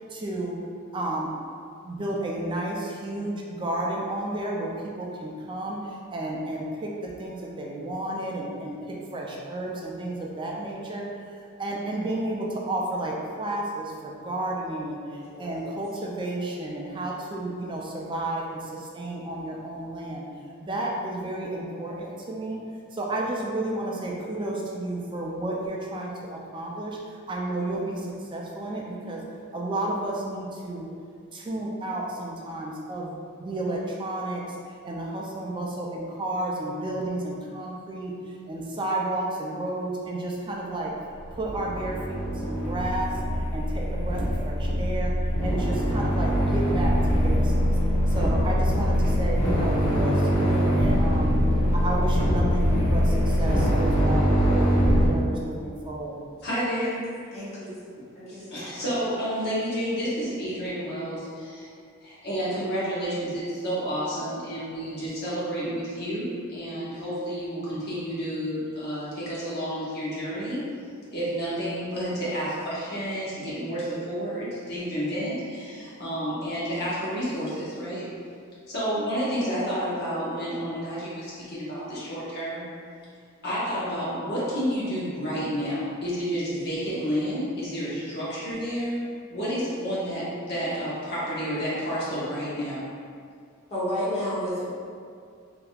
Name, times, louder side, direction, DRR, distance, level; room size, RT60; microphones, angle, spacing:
voice 1, 0.1-0.5 0.9-1.3 1.8-4.7 5.0-11.1 11.6-20.2 20.6-22.6 22.9-27.0 27.3-29.2 29.5-30.9 31.3-34.4 34.8-38.1 38.5-40.9 41.3-45.1 45.4-47.6 48.1-51.3 51.7-56.2, right 1 dB, 25° right, -2 dB, 0.3 m, -32 dB
voice 2, 15.2-15.7 29.0-29.1 57.3-57.7 58.2-58.4 58.7-58.8 93.7-94.7, equal, 30° left, -10 dB, 1.1 m, -31 dB
sound 1, 41.2-55.1, equal, 80° left, 1.0 m, -23 dB
voice 3, 56.4-57.3 58.3-61.7 62.0-70.6 71.1-78.1 78.7-82.6 83.4-89.0 89.3-92.9, equal, 50° left, -9 dB, 1.1 m, -30 dB
3.4 x 2.8 x 2.3 m, 2.2 s
head